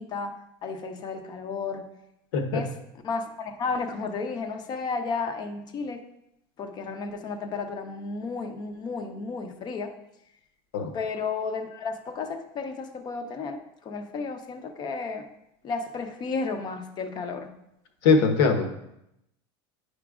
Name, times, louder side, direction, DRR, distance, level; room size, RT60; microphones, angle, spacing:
voice 1, 0.0-1.9 2.5-2.7 3.0-6.0 6.6-9.9 10.9-15.3 15.6-17.5, left 4 dB, 35° left, 7 dB, 0.7 m, -33 dB
voice 2, 18.0-18.6, left 4 dB, 75° left, 4 dB, 1.1 m, -21 dB
9.9 x 5.0 x 2.4 m, 0.82 s
supercardioid pair, 135°, 13 cm